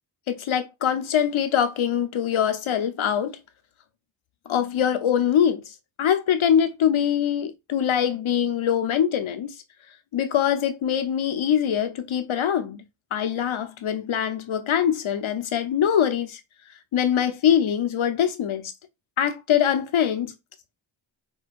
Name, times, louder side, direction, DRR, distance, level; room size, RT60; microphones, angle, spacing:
voice 1, 0.3-3.4 4.5-5.7 6.0-9.5 10.1-12.8 13.1-16.4 16.9-18.7 19.2-20.3, left 9 dB, 75° left, 0.9 m, -23 dB
4.8 x 2.2 x 4.2 m
cardioid pair, 45°, 48 cm